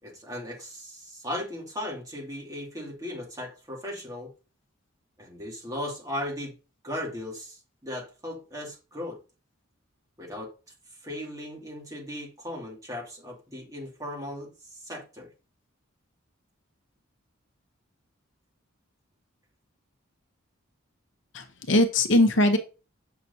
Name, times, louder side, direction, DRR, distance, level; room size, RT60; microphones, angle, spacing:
voice 1, 0.0-4.3 5.2-6.5 6.8-9.2 10.2-10.5 11.0-14.5 14.8-15.3, left 1 dB, 15° right, 2.3 m, -37 dB
voice 2, 21.3-22.6, left 1 dB, 60° left, 0.9 m, -21 dB
7.4 x 5.8 x 2.8 m
head